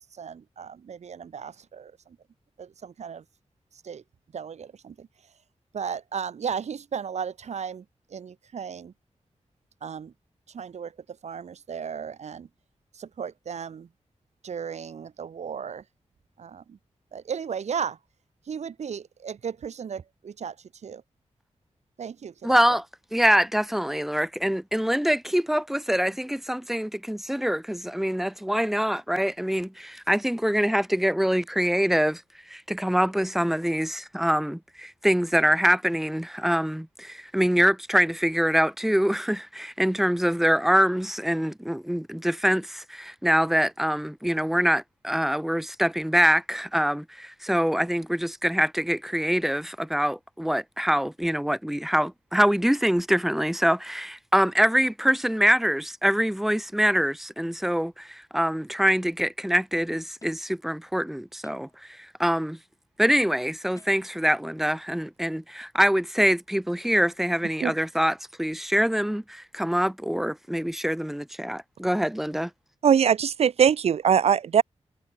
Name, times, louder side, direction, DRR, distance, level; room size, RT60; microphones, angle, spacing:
voice 1, 0.0-2.2 2.6-3.2 3.8-4.0 4.3-5.1 5.7-8.9 9.8-10.1 10.5-12.5 12.9-13.9 14.4-15.8 16.4-16.8 17.1-18.0 18.5-21.0 22.0-22.8, right 7 dB, 80° right, 1.9 m, -35 dB
voice 2, 22.4-22.8 23.1-32.2 32.5-61.7 62.2-62.6 63.0-72.5, equal, ahead, 0.8 m, -24 dB
sound 1, 60.2-60.6 61.4-62.0 63.8-64.3 65.6-65.7, left 3 dB, 30° left, 6.7 m, -56 dB
voice 3, 72.8-74.6, right 8 dB, 65° right, 0.4 m, -20 dB
wide cardioid pair, 140°, 11 cm